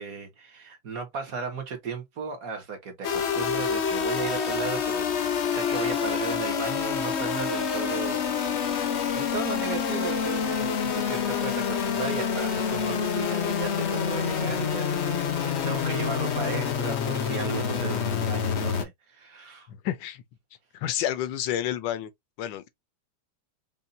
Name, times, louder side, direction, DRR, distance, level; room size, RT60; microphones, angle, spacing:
voice 1, 0.0-19.7, right 5 dB, 50° right, 1.5 m, -36 dB
sound 1, 3.0-18.8, left 7 dB, 55° left, 0.8 m, -27 dB
voice 2, 19.7-20.2 20.7-22.1 22.4-22.7, left 11 dB, 80° left, 1.4 m, -30 dB
5.4 x 2.5 x 2.6 m
omnidirectional pair, 2.1 m